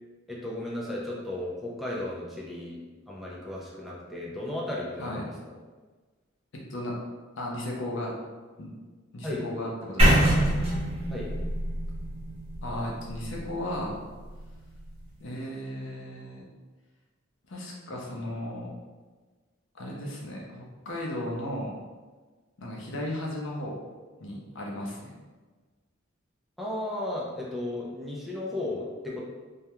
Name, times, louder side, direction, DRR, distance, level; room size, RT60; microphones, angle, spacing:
voice 1, 0.3-2.8 3.1-5.4 9.2-9.5 11.1-11.3 26.6-29.2, left 1 dB, ahead, -5 dB, 0.3 m, -34 dB
voice 2, 7.4-8.1 8.6-8.7 9.1-10.4 12.6-14.0 15.2-16.4 17.5-18.7 19.8-21.8 22.6-23.8 24.2-25.1, left 1 dB, 65° left, -2 dB, 0.6 m, -35 dB
sound 1, 10.0-14.0, right 1 dB, 30° right, 0.9 m, -25 dB
2.3 x 2.2 x 2.9 m, 1.3 s
head